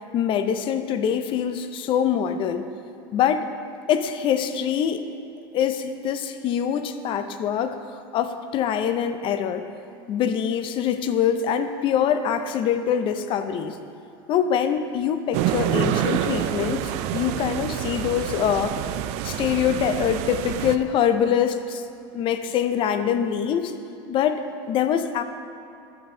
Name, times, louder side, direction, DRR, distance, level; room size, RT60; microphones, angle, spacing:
voice 1, 0.1-2.6 3.1-3.5 3.9-5.0 5.5-9.7 10.1-13.8 14.3-18.8 19.2-21.8 22.1-23.7 24.1-24.4 24.7-25.2, left 8 dB, 40° left, 10 dB, 0.6 m, -24 dB
sound 1, 15.3-20.8, right 11 dB, 60° right, 0.4 m, -27 dB
13.0 x 7.6 x 2.7 m, 2.8 s
supercardioid pair, 115°, 13 cm